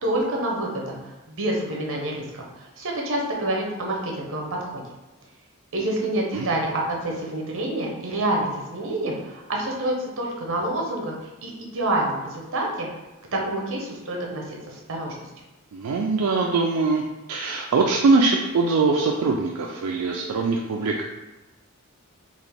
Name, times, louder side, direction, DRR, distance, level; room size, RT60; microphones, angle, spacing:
voice 1, 0.0-1.0 1.3-4.8 5.7-11.1 11.4-12.9 13.3-15.3, right 1 dB, 60° right, -1 dB, 0.8 m, -27 dB
voice 2, 15.7-17.0 17.3-21.0, right 3 dB, 80° right, 0 dB, 0.4 m, -22 dB
3.9 x 2.5 x 3.4 m, 1.1 s
head